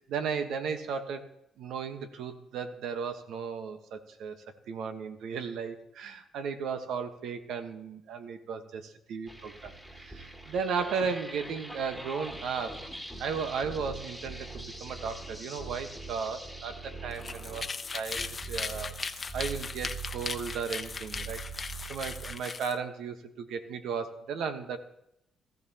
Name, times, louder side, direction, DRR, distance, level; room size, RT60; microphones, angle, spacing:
voice 1, 0.1-1.3 1.6-4.4 4.7-12.8 13.2-19.0 19.3-21.4 21.9-24.8, right 6 dB, 80° right, 7 dB, 1.2 m, -35 dB
sound 1, 9.3-22.4, right 3 dB, 10° right, 2.2 m, -43 dB
sound 2, 17.1-22.7, left 4 dB, 35° left, 0.8 m, -38 dB
17.0 x 14.5 x 2.9 m, 0.79 s
cardioid pair, 90°, 0 cm